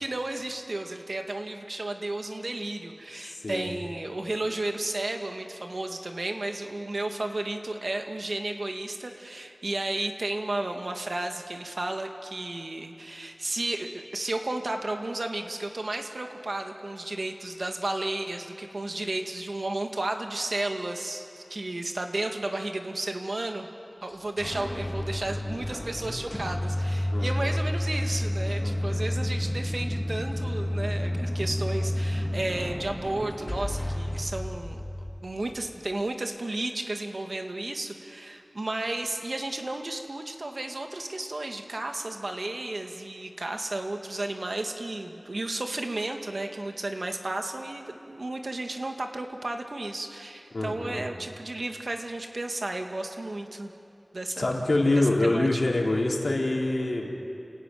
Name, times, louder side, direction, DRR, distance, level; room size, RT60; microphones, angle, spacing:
voice 1, 0.0-23.7 24.0-34.8 35.2-53.7 54.1-54.5 54.9-55.6, right 2 dB, 65° right, 4 dB, 2.2 m, -33 dB
voice 2, 3.1-3.7 27.1-27.6 28.6-29.1 50.5-51.1 54.4-57.1, left 2 dB, 70° left, -2 dB, 4.1 m, -26 dB
sound 1, 24.1-35.7, left 1 dB, 25° left, 2.1 m, -30 dB
29.5 x 16.5 x 9.5 m, 2.7 s
wide cardioid pair, 55°, 0 cm